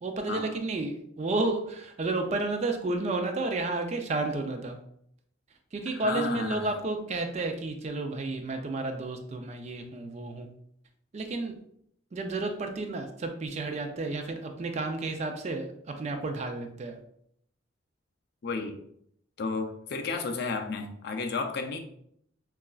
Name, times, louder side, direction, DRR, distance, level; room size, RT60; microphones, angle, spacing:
voice 1, 0.0-4.8 5.7-10.5 11.1-11.6 12.1-17.0, right 2 dB, 35° right, 5 dB, 0.3 m, -31 dB
voice 2, 5.9-6.7 18.4-18.7 19.4-21.8, left 4 dB, 50° left, 5 dB, 0.4 m, -32 dB
4.0 x 2.3 x 2.3 m, 0.71 s
head